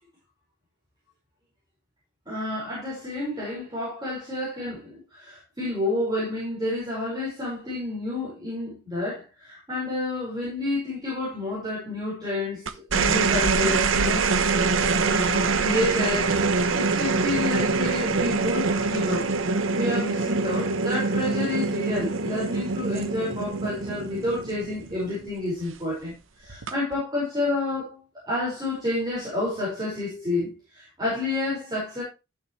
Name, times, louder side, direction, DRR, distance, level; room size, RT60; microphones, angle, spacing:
voice 1, 2.3-14.3 15.0-16.4 16.7-26.1 26.4-28.0 28.3-32.0, left 2 dB, 20° right, 5.2 m, -29 dB
sound 1, 12.7-25.3 26.5-26.9, right 4 dB, 90° right, 1.0 m, -24 dB
13.0 x 7.0 x 3.2 m
head